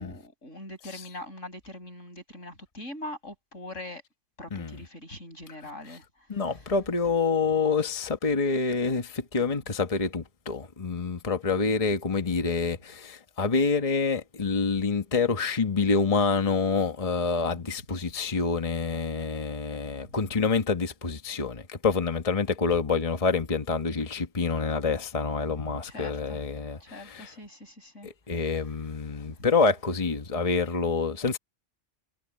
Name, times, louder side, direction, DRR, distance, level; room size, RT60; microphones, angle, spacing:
voice 1, 0.0-4.0 4.4-6.6 17.5-17.6 19.9-20.2 25.5-26.4 26.8-28.7 29.3-29.4, left 1 dB, 90° left, 8.3 m, -43 dB
voice 2, 6.3-27.3 28.0-31.4, left 4 dB, 30° left, 1.3 m, -27 dB
omnidirectional pair, 1.3 m